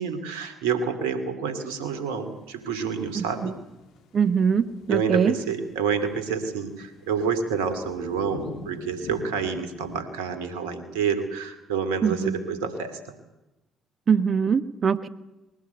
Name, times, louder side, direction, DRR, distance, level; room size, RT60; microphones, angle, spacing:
voice 1, 0.0-3.5 4.9-13.0, right 6 dB, 80° right, 10 dB, 2.5 m, -28 dB
sound 1, 2.8-10.0, left 3 dB, 70° left, 2.7 m, -44 dB
voice 2, 3.1-3.5 4.1-5.3 12.0-12.4 14.1-15.1, right 6 dB, 45° right, 15 dB, 1.3 m, -23 dB
21.0 x 17.5 x 8.3 m, 0.99 s
hypercardioid pair, 50°, 0 cm